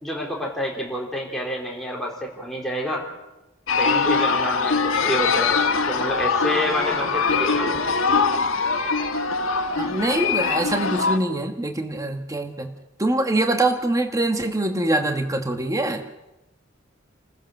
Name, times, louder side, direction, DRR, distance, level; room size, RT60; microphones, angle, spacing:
voice 1, 0.0-3.0 3.8-5.6 5.9-7.9, left 1 dB, ahead, -2 dB, 4.1 m, -28 dB
sound 1, 3.7-11.2, left 4 dB, 90° left, 1.7 m, -22 dB
voice 2, 9.7-12.7 13.0-16.0, right 2 dB, 15° right, 5 dB, 1.4 m, -24 dB
29.5 x 15.0 x 6.6 m, 0.99 s
head